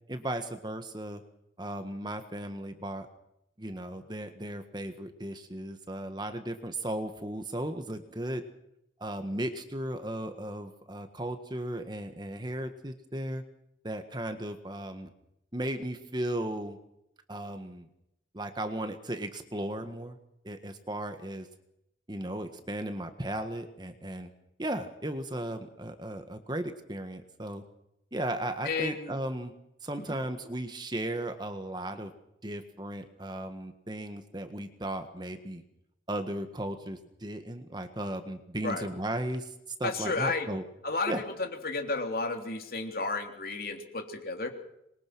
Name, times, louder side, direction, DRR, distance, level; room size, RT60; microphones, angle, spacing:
voice 1, 0.1-1.2 1.6-3.1 3.6-8.4 9.0-13.4 13.8-15.1 15.5-16.8 17.3-17.9 18.3-20.2 20.4-21.5 22.1-24.3 24.6-27.6 28.1-29.5 29.8-32.1 32.4-35.6 36.1-40.6 41.1-41.2, right 1 dB, 25° right, 8 dB, 1.6 m, -36 dB
voice 2, 28.6-29.1 30.1-30.2 38.6-38.9 39.8-40.5 40.8-44.5, left 3 dB, 55° left, 4 dB, 3.5 m, -32 dB
26.5 x 22.0 x 6.2 m, 0.79 s
head